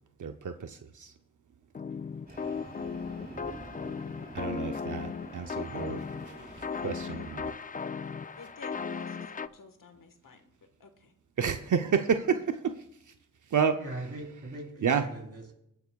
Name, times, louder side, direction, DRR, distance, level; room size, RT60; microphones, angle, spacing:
voice 1, 0.2-1.1 4.3-7.5 11.4-12.8 13.5-13.8 14.3-14.5 14.8-15.1, right 6 dB, 65° right, 6 dB, 0.6 m, -30 dB
sound 1, 1.7-9.5, left 5 dB, 25° left, 0.4 m, -37 dB
Train, 2.3-7.5, right 2 dB, 30° right, 3.4 m, -47 dB
voice 2, 8.4-10.5 10.8-11.1, left 5 dB, 85° left, 6 dB, 1.4 m, -52 dB
voice 3, 13.7-15.5, right 2 dB, 50° right, 0 dB, 3.5 m, -41 dB
23.0 x 9.6 x 2.3 m, 0.80 s
wide cardioid pair, 70°, 32 cm